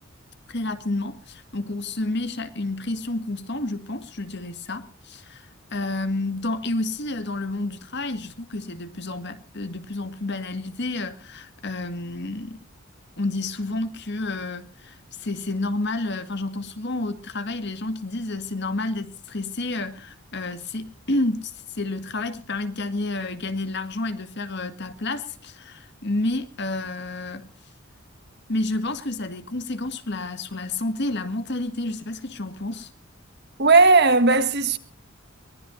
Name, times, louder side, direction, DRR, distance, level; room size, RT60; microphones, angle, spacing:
voice 1, 0.5-12.6 13.2-27.5 28.5-32.9, left 2 dB, 55° left, 1.9 m, -30 dB
voice 2, 33.6-34.8, right 3 dB, 55° right, 1.6 m, -16 dB
23.5 x 19.0 x 2.7 m
head